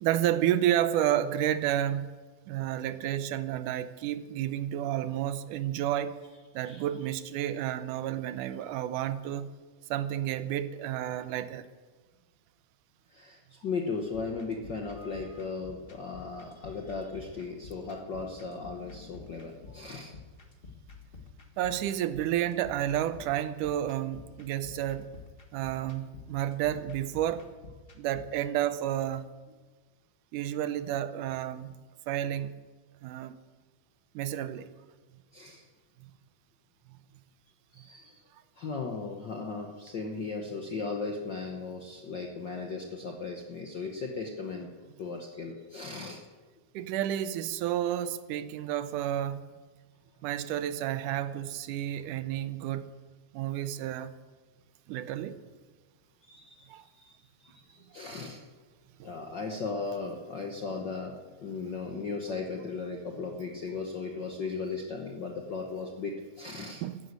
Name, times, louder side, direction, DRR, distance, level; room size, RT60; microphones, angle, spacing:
voice 1, 0.0-2.1 2.5-6.2 6.6-9.5 9.9-11.7 21.6-25.1 25.5-27.5 28.0-29.3 30.3-31.8 32.1-32.5 33.0-33.4 34.2-34.7 46.7-49.4 50.2-52.9 53.3-54.1 54.9-55.4 56.7-56.8 59.0-59.1 66.8-67.0, right 11 dB, 80° right, 2.2 m, -31 dB
voice 2, 13.1-20.1 35.3-35.6 37.7-38.2 38.6-44.7 45.0-46.2 56.2-56.7 57.0-57.2 57.4-57.7 57.9-58.4 59.0-66.8, left 4 dB, 60° left, 1.1 m, -37 dB
sound 1, 14.1-28.5, left 4 dB, 30° left, 1.0 m, -50 dB
13.5 x 11.0 x 8.2 m
omnidirectional pair, 3.6 m